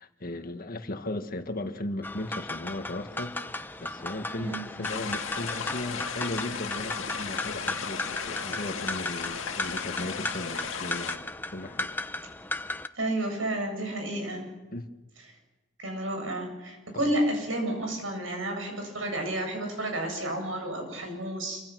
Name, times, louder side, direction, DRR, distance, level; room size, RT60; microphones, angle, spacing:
voice 1, 0.0-3.4 3.8-11.2 11.5-12.0 14.7-14.9 16.9-17.1, left 1 dB, 50° left, 6 dB, 1.7 m, -36 dB
sound 1, 2.0-12.9, left 2 dB, 10° left, 0.7 m, -36 dB
sound 2, 4.8-11.2, left 6 dB, 85° left, 1.8 m, -36 dB
voice 2, 13.0-14.5 15.8-21.6, right 1 dB, 85° right, 3 dB, 7.7 m, -31 dB
26.5 x 25.0 x 6.3 m, 1.2 s
head